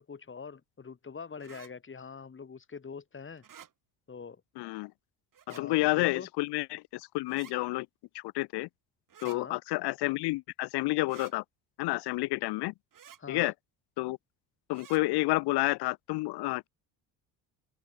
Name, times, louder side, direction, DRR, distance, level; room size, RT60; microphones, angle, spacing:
voice 1, 0.0-3.4 4.1-4.4 5.5-6.3 9.2-9.6 13.2-13.5, left 5 dB, 30° left, 2.5 m, -44 dB
sound 1, 1.4-1.7 3.4-3.7 5.3-5.6 7.3-7.5 9.1-9.4 11.1-11.3 12.9-13.2 14.7-15.0, right 9 dB, 50° right, 6.7 m, -51 dB
voice 2, 4.6-4.9 5.6-7.9 8.1-8.7 9.2-11.4 11.8-12.7 13.3-13.5 14.0-14.2 14.7-16.7, left 21 dB, 70° left, 0.7 m, -30 dB
open air
supercardioid pair, 80°, 42 cm